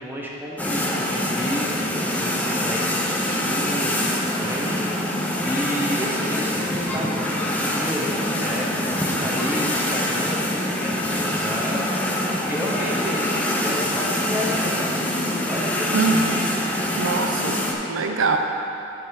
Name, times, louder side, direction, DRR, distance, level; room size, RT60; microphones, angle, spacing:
voice 1, 0.0-14.9 15.4-16.2, equal, 10° right, -4 dB, 0.8 m, -31 dB
sound 1, 0.6-17.7, left 1 dB, 10° left, 0.5 m, -25 dB
voice 2, 15.9-16.5 17.0-18.4, right 3 dB, 70° right, 4 dB, 0.5 m, -23 dB
8.9 x 3.3 x 6.3 m, 2.9 s
head